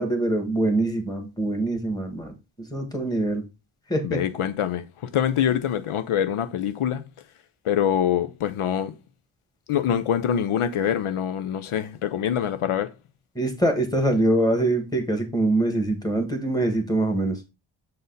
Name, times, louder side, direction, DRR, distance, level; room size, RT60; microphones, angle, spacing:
voice 1, 0.0-3.4 3.9-4.2 13.3-17.4, right 1 dB, 10° left, 1.6 m, -24 dB
voice 2, 4.0-7.0 7.6-8.9 9.7-12.9, left 9 dB, 85° left, 0.7 m, -25 dB
6.8 x 4.0 x 3.9 m
wide cardioid pair, 110°, 49 cm